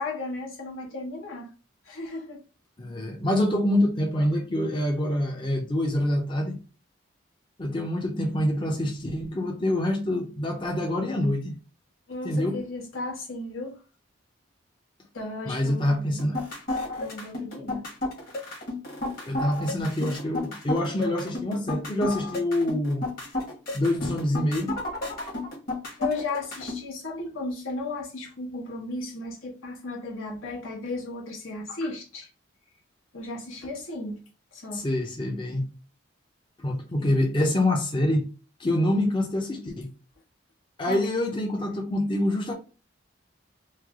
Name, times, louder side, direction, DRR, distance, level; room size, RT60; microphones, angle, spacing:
voice 1, 0.0-1.5 1.8-2.4 12.1-13.8 15.1-16.2 16.5-16.6 17.0-17.9 21.2-21.3 26.0-32.3 33.1-34.2 34.5-34.9 40.8-41.0, left 2 dB, 90° left, 1.1 m, -35 dB
voice 2, 2.8-6.6 7.6-11.6 12.2-12.6 15.5-16.4 19.3-23.0 23.7-24.7 34.7-35.6 36.6-38.3 38.6-39.9 40.8-42.5, left 1 dB, 25° left, 0.5 m, -26 dB
sound 1, 16.2-26.8, left 2 dB, 45° left, 1.1 m, -32 dB
3.1 x 2.0 x 3.5 m
head